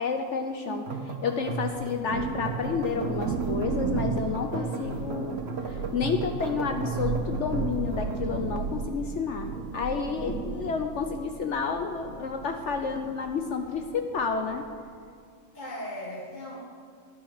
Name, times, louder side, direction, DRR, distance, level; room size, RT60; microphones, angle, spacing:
voice 1, 0.0-5.4 5.6-14.6, left 5 dB, 65° left, 5 dB, 0.9 m, -30 dB
sound 1, 0.7-8.3, right 3 dB, 50° right, 1.3 m, -35 dB
Thunder, 1.6-14.8, right 5 dB, 75° right, 1.2 m, -35 dB
voice 2, 4.5-4.9 15.5-16.6, equal, 35° left, -4 dB, 1.6 m, -38 dB
10.0 x 9.8 x 6.5 m, 2.2 s
omnidirectional pair, 1.4 m